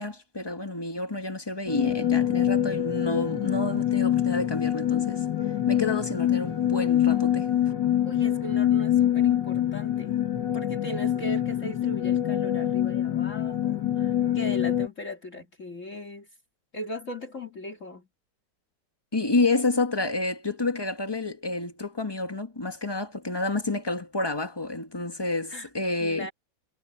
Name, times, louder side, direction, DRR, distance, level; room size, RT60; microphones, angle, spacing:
voice 1, 0.0-5.2 5.7-7.5 19.1-26.3, left 2 dB, 15° left, 1.5 m, -29 dB
sound 1, 1.7-14.9, left 11 dB, 70° left, 2.3 m, -25 dB
voice 2, 8.0-10.2 10.5-16.3 16.7-18.1 25.5-25.7 26.0-26.3, left 1 dB, 40° left, 2.8 m, -38 dB
omnidirectional pair, 2.0 m